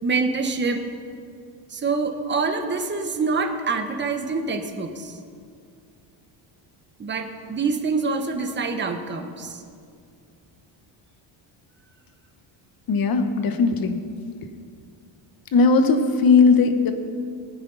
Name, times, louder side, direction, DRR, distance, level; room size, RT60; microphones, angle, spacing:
voice 1, 0.0-0.8 1.7-5.2 7.0-9.6, right 4 dB, 25° right, 5 dB, 1.1 m, -26 dB
voice 2, 12.9-14.0 15.5-16.9, left 4 dB, 45° left, 7 dB, 1.2 m, -18 dB
20.5 x 9.6 x 4.0 m, 2.2 s
cardioid pair, 130°, 48 cm